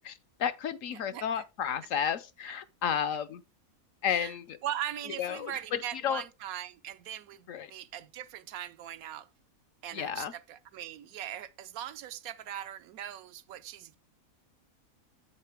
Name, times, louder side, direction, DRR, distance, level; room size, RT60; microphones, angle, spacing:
voice 1, 0.0-3.4 4.0-4.6 5.2-6.2 7.5-7.7 9.9-10.3, left 8 dB, 65° left, 0.9 m, -32 dB
voice 2, 0.9-1.4 4.1-4.3 4.6-9.3 9.8-14.0, right 11 dB, 75° right, 1.0 m, -40 dB
8.1 x 6.6 x 3.4 m
omnidirectional pair, 1.6 m